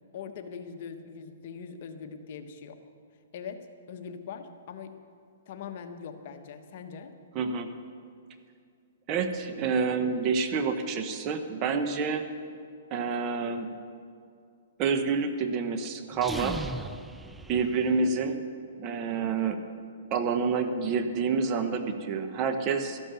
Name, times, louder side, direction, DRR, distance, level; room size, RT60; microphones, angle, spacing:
voice 1, 0.1-2.8 3.3-5.0 5.5-7.1, left 6 dB, 50° left, 6 dB, 1.2 m, -41 dB
voice 2, 7.3-7.7 9.1-12.2 12.9-13.7 14.8-16.6 17.5-18.4 18.8-19.6 20.1-23.0, right 5 dB, 30° right, 8 dB, 1.1 m, -28 dB
sound 1, 16.1-18.3, right 2 dB, 5° right, 0.4 m, -38 dB
13.5 x 11.5 x 6.9 m, 2.3 s
hypercardioid pair, 145°, 0 cm